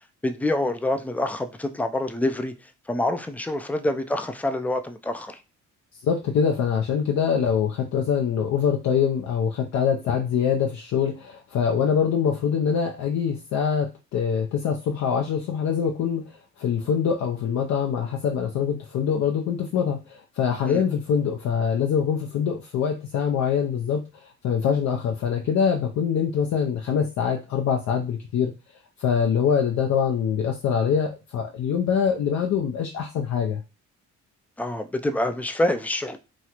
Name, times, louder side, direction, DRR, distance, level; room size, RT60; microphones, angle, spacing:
voice 1, 0.2-2.5 2.9-5.4 20.7-20.8 34.6-36.2, left 1 dB, 5° left, 0.3 m, -26 dB
voice 2, 6.0-28.5 29.0-33.6, left 7 dB, 65° left, 0.6 m, -24 dB
3.0 x 2.4 x 2.9 m
cardioid pair, 90°, 30 cm